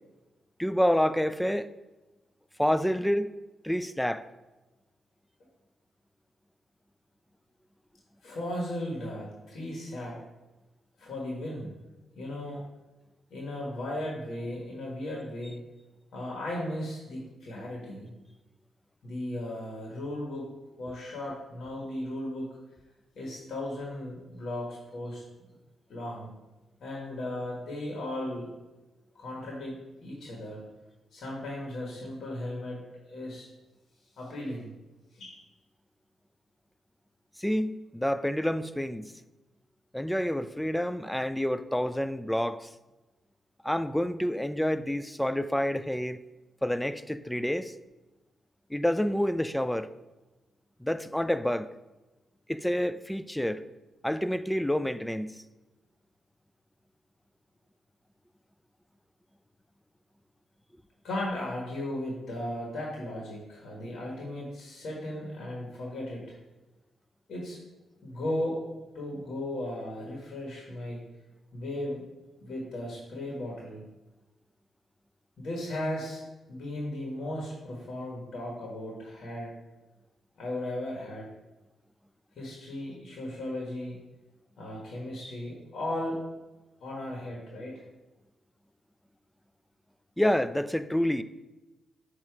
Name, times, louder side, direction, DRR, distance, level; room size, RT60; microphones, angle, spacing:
voice 1, 0.6-1.7 2.6-3.3 3.6-4.2 37.4-39.1 39.9-42.7 43.6-46.2 46.6-47.7 48.7-49.9 50.8-51.7 52.5-53.6 54.0-55.4 90.2-91.2, equal, 5° left, 0.4 m, -28 dB
voice 2, 8.2-10.2 11.0-11.7 12.1-12.6 13.3-15.6 16.1-18.1 19.0-20.5 20.8-22.5 23.1-25.2 25.9-26.3 26.8-28.5 29.1-30.6 31.1-32.8 33.1-33.5 34.2-34.7 35.1-35.4 61.0-66.3 67.3-67.6 68.0-68.6 68.9-71.0 71.5-72.0 72.4-73.8 75.4-76.2 76.5-79.5 80.4-81.3 82.4-84.0 84.6-86.2 86.8-87.8, left 1 dB, 70° left, 1.5 m, -36 dB
7.1 x 2.9 x 4.7 m
supercardioid pair, 55°, 0 cm